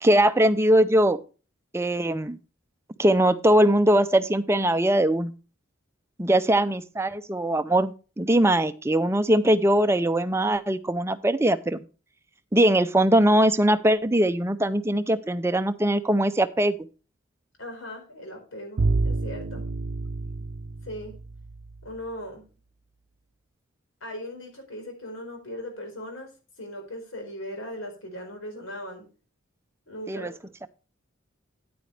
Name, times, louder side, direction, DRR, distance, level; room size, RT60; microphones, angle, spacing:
voice 1, 0.0-1.2 1.7-2.4 3.0-5.3 6.2-11.8 12.5-16.7 30.1-30.3, right 1 dB, 15° right, 11 dB, 0.5 m, -21 dB
voice 2, 17.6-19.6 20.8-21.2 21.8-22.4 24.0-26.3 26.6-29.1 29.9-30.3, left 1 dB, 90° left, 3 dB, 4.5 m, -38 dB
Bowed string instrument, 18.8-21.8, right 3 dB, 60° right, 0.5 m, -28 dB
9.4 x 9.1 x 3.3 m, 0.33 s
head